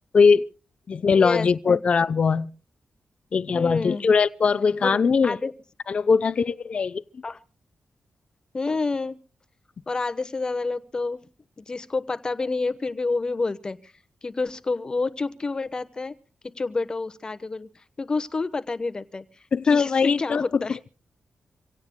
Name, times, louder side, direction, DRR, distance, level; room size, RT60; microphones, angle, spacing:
voice 1, 0.1-0.5 0.9-2.5 3.3-5.4 5.9-7.0 19.5-20.6, left 5 dB, 45° left, 0.6 m, -21 dB
voice 2, 1.2-1.8 3.5-4.1 4.8-5.5 7.2-7.4 8.5-9.2 9.9-11.2 11.6-13.9 14.2-16.1 16.6-17.7 18.0-19.2 19.7-20.8, left 3 dB, 30° left, 1.0 m, -28 dB
26.5 x 17.0 x 2.2 m
wide cardioid pair, 135°, 3 cm